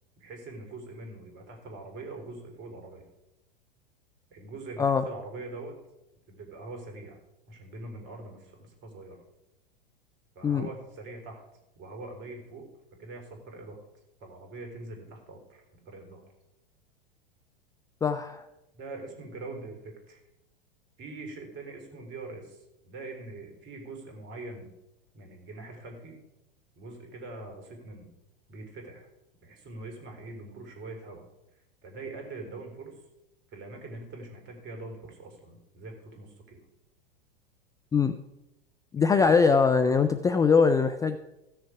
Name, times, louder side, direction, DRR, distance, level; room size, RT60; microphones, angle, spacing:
voice 1, 0.2-3.1 4.3-5.8 6.3-7.2 7.5-9.2 10.3-11.4 11.7-12.7 13.0-13.8 14.2-16.2 18.7-20.2 21.0-24.7 25.1-26.2 26.7-28.1 28.5-29.1 29.4-31.3 31.8-33.0 33.5-36.6 39.2-39.3, right 2 dB, 40° right, 3 dB, 3.4 m, -43 dB
voice 2, 18.0-18.4 37.9-38.1 38.9-41.2, left 5 dB, 10° left, 9 dB, 0.4 m, -22 dB
15.5 x 6.6 x 4.8 m, 0.92 s
hypercardioid pair, 95°, 29 cm